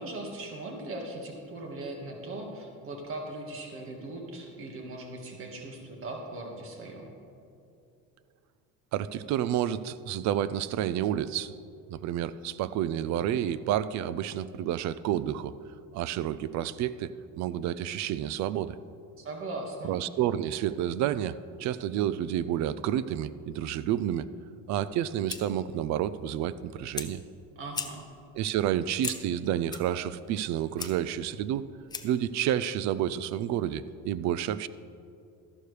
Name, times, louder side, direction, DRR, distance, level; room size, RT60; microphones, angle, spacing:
voice 1, 0.0-7.1 19.2-19.9 27.5-28.0, right 2 dB, 40° right, 1 dB, 1.7 m, -39 dB
voice 2, 8.9-11.5 11.9-15.5 15.9-17.1 17.4-18.8 19.8-24.3 24.7-27.2 28.4-31.7 32.0-34.7, right 11 dB, 55° right, 16 dB, 0.4 m, -30 dB
Fire, 24.8-32.3, left 4 dB, 10° left, 0.5 m, -42 dB
13.0 x 11.0 x 3.3 m, 2.5 s
cardioid pair, 135°, 33 cm